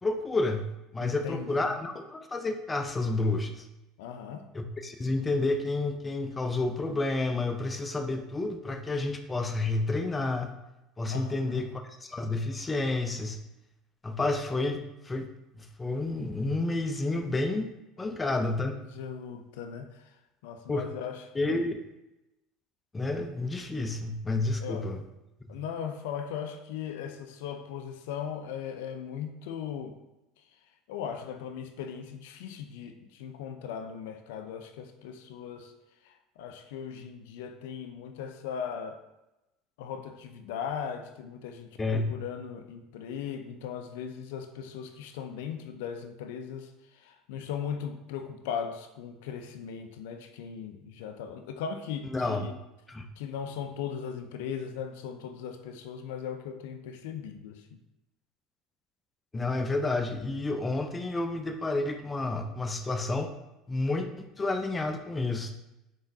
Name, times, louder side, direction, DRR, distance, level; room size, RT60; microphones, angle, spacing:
voice 1, 0.0-3.7 4.5-10.5 11.0-13.4 14.0-15.3 15.6-17.7 18.0-18.8 20.7-20.9 21.3-21.8 22.9-25.0 25.5-25.6 41.8-42.1 52.1-52.5 52.9-53.0 59.3-63.3 63.7-65.6, left 2 dB, 20° left, 6 dB, 0.5 m, -30 dB
voice 2, 1.0-1.8 4.0-4.5 11.1-11.6 18.7-20.1 20.4-21.7 24.6-24.9 25.5-30.0 30.9-35.7 36.0-39.0 39.8-52.5 53.2-57.6, left 7 dB, 75° left, 7 dB, 0.4 m, -38 dB
3.7 x 3.6 x 2.7 m, 0.96 s
hypercardioid pair, 80°, 0 cm